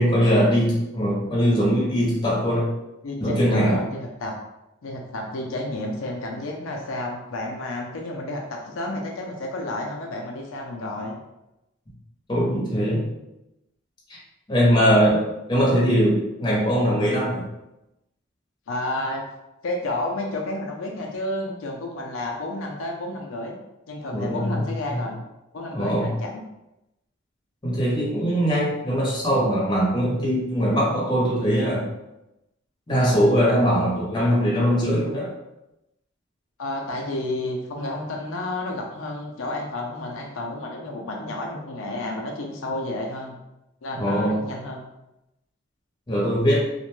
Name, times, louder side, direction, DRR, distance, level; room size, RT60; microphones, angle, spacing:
voice 1, 0.0-2.7 3.2-3.8 12.3-13.0 14.5-15.2 15.5-17.4 24.1-24.6 24.9-25.0 25.7-26.1 27.6-31.9 32.9-35.3 44.0-44.4 46.1-46.6, equal, 20° left, -6 dB, 0.7 m, -21 dB
voice 2, 3.0-4.4 4.8-11.2 14.8-15.0 18.7-19.2 19.6-23.6 23.9-25.2 25.5-26.4 33.7-34.3 36.6-43.3 43.8-44.8, left 1 dB, 80° left, 0 dB, 0.4 m, -31 dB
2.5 x 2.2 x 3.0 m, 0.93 s
head